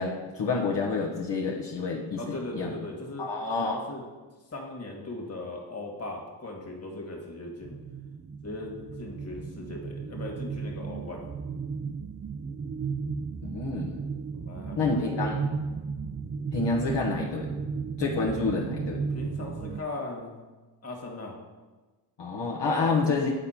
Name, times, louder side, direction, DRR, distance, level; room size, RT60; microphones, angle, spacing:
voice 1, 0.0-2.7 3.2-3.7 13.4-14.0 14.8-15.4 16.5-17.5 18.0-19.0 22.2-23.3, left 4 dB, 65° left, -3 dB, 1.1 m, -28 dB
voice 2, 2.2-3.3 3.6-4.0 4.5-7.8 8.4-11.2 14.3-15.3 18.9-20.4 20.8-21.4 22.6-23.0, left 2 dB, 30° left, 0 dB, 1.8 m, -38 dB
sound 1, 7.6-19.8, right 5 dB, 25° right, 0.3 m, -35 dB
8.5 x 4.1 x 4.3 m, 1.3 s
supercardioid pair, 45°, 47 cm